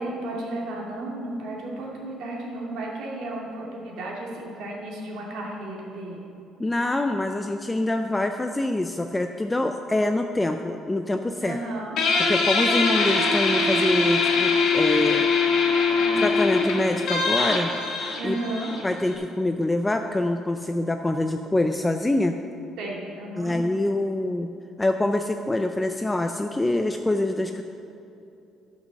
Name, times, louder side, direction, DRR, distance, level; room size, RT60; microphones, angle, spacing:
voice 1, 0.0-6.3 11.4-12.0 16.0-16.3 18.2-18.7 22.8-23.6, right 1 dB, 70° right, -2 dB, 2.3 m, -33 dB
voice 2, 6.6-11.6 12.2-15.3 16.2-17.7 18.2-18.3 18.8-22.4 23.4-24.5 24.8-27.6, left 2 dB, 10° left, 6 dB, 0.4 m, -25 dB
Guitar, 12.0-19.1, left 4 dB, 65° left, 1.7 m, -22 dB
11.5 x 6.2 x 6.3 m, 2.7 s
cardioid pair, 155°, 0 cm